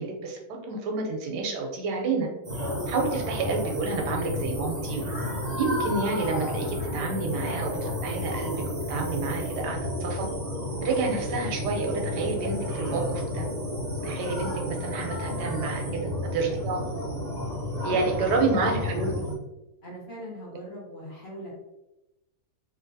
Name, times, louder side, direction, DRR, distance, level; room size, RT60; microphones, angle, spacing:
voice 1, 0.0-2.3 2.9-5.1 5.6-8.5 8.9-10.3 10.8-13.5 14.0-16.8 17.8-19.1, right 3 dB, 90° right, 1 dB, 1.3 m, -29 dB
sound 1, 2.4-19.4, left 1 dB, 50° right, 0.5 m, -31 dB
voice 2, 17.8-19.0 19.8-21.5, equal, 45° left, -5 dB, 1.0 m, -40 dB
3.1 x 2.8 x 2.6 m, 0.96 s
omnidirectional pair, 1.8 m